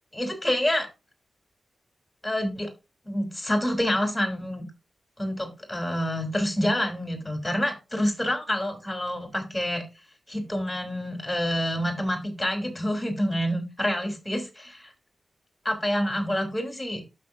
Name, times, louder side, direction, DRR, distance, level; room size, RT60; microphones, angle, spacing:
voice 1, 0.1-0.9 2.2-2.7 3.1-4.6 5.2-9.8 10.3-14.9 15.6-17.0, equal, 5° left, 5 dB, 3.4 m, -27 dB
12.5 x 6.5 x 2.7 m, 0.26 s
wide cardioid pair, 140°, 0 cm